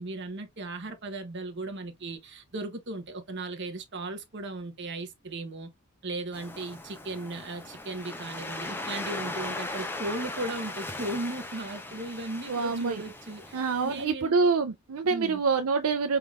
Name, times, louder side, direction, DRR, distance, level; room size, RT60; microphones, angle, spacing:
voice 1, 0.0-5.7 6.0-14.4 15.1-15.4, right 2 dB, 55° right, 1.1 m, -36 dB
Waves surf, 6.3-14.0, left 2 dB, 10° left, 0.7 m, -38 dB
voice 2, 12.5-13.0 13.5-16.2, right 4 dB, 75° right, 0.5 m, -26 dB
4.8 x 3.6 x 2.4 m
head